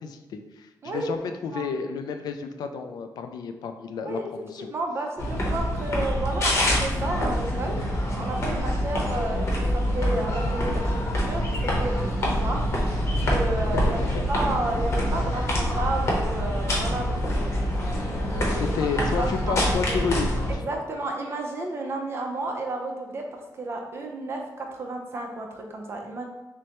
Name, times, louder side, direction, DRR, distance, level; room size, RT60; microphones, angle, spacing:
voice 1, 0.0-4.7 13.7-14.2 18.6-20.7, left 5 dB, 75° left, 7 dB, 0.3 m, -31 dB
voice 2, 4.6-7.8 8.2-9.5 9.7-12.7 13.3-14.0 14.3-17.7 18.2-18.6 19.0-20.0 20.6-26.2, right 2 dB, 35° right, 2 dB, 0.6 m, -32 dB
sound 1, 5.2-20.5, equal, 40° left, 0.9 m, -25 dB
6.1 x 2.2 x 2.9 m, 1.1 s
wide cardioid pair, 175°, 7 cm